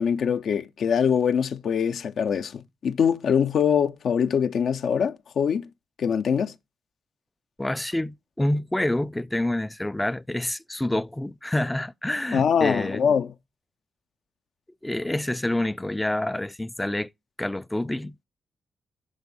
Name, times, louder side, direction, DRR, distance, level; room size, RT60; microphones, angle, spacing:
voice 1, 0.0-5.7 6.0-6.5 12.3-13.3, left 7 dB, 70° left, 0.5 m, -23 dB
voice 2, 7.6-13.0 14.8-17.1 17.4-18.2, left 1 dB, 10° left, 0.3 m, -27 dB
6.1 x 3.5 x 5.3 m
supercardioid pair, 50°, 0 cm